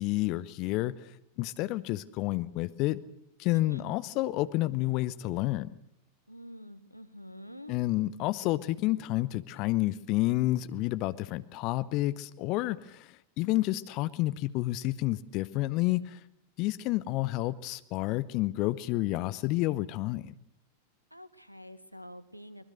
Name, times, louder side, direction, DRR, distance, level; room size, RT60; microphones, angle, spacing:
voice 1, 0.0-3.0 3.4-5.7 7.7-16.2 16.6-20.3, left 17 dB, 40° left, 16 dB, 0.8 m, -30 dB
voice 2, 3.5-3.9 6.3-7.8 21.1-22.7, equal, 90° right, 14 dB, 1.3 m, -47 dB
24.0 x 20.5 x 6.5 m, 0.75 s
figure-of-eight pair, 90°, 0 cm